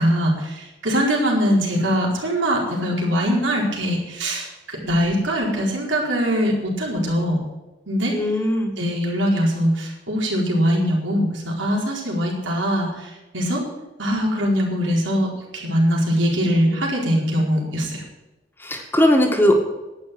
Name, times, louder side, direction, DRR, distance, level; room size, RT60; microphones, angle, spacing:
voice 1, 0.0-7.4 7.9-8.1 8.8-13.6 14.0-15.3 15.5-18.0, equal, 85° right, -1 dB, 4.5 m, -22 dB
voice 2, 8.1-8.7 18.6-19.5, left 1 dB, 10° left, 2 dB, 1.9 m, -18 dB
11.5 x 9.7 x 7.7 m, 1.1 s
head